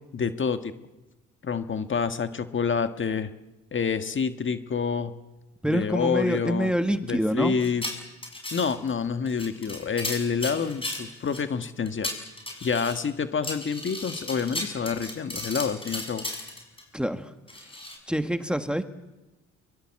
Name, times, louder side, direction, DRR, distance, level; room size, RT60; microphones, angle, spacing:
voice 1, 0.1-0.7 1.4-3.3 3.7-5.1 5.7-6.7 7.0-7.8 8.5-12.1 12.6-16.3, left 6 dB, 40° left, 9 dB, 1.5 m, -28 dB
voice 2, 5.6-7.6 16.9-17.3 18.1-18.8, equal, 5° right, 8 dB, 1.5 m, -26 dB
sound 1, 7.6-8.9 9.3-11.4 11.9-13.0 13.4-16.8 17.5-18.0, left 1 dB, 15° left, 6.3 m, -35 dB
23.0 x 23.0 x 7.6 m, 1.1 s
cardioid pair, 90°, 30 cm